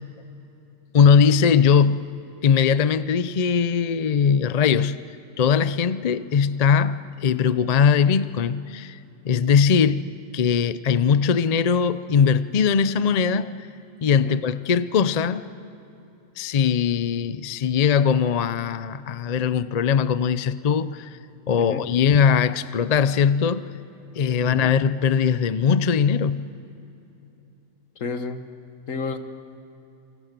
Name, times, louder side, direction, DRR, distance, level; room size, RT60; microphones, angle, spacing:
voice 1, 0.9-2.1 2.4-5.0 5.4-9.0 9.2-13.5 14.0-15.4 16.4-21.1 21.5-23.7 24.2-26.5, left 6 dB, 45° left, 0.5 m, -20 dB
voice 2, 28.0-28.5 28.9-29.2, left 4 dB, 75° left, 1.7 m, -31 dB
29.5 x 25.0 x 6.8 m
omnidirectional pair, 1.4 m